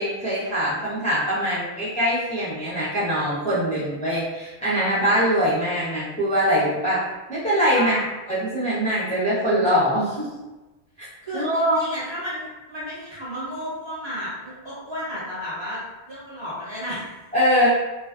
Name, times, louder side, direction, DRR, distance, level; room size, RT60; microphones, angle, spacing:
voice 1, 0.0-7.0 7.3-8.0 8.3-10.3 11.3-11.8 17.3-17.7, equal, 10° left, -12 dB, 0.4 m, -22 dB
voice 2, 7.7-8.1 11.2-17.2, equal, 25° right, -11 dB, 1.1 m, -33 dB
2.4 x 2.2 x 2.3 m, 1.1 s
omnidirectional pair, 1.1 m